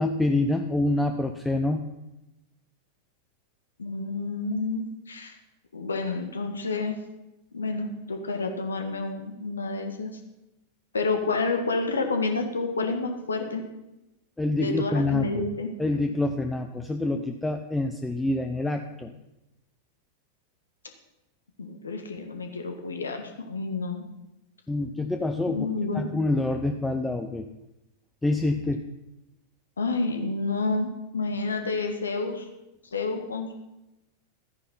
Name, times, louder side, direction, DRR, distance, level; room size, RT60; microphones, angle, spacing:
voice 1, 0.0-1.8 14.4-15.5 15.8-19.1 24.7-25.7 25.9-27.5 28.2-28.8, left 2 dB, 10° left, 5 dB, 0.8 m, -26 dB
voice 2, 3.8-5.4 5.7-7.0 7.5-10.1 10.9-13.6 14.6-15.7 21.6-24.0 25.5-26.1 29.8-32.5 32.9-33.5, left 3 dB, 75° left, 5 dB, 1.8 m, -29 dB
13.5 x 9.8 x 5.6 m, 0.95 s
figure-of-eight pair, 90°, 0 cm